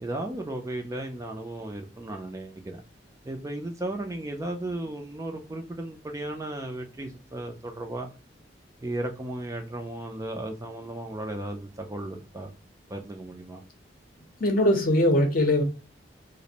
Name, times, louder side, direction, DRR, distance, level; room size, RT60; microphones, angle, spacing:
voice 1, 0.0-2.8 3.2-8.1 8.8-12.5 12.9-13.6, right 1 dB, 15° right, 0.3 m, -35 dB
voice 2, 14.4-15.6, left 1 dB, 50° left, 0.6 m, -21 dB
2.4 x 2.0 x 2.7 m
head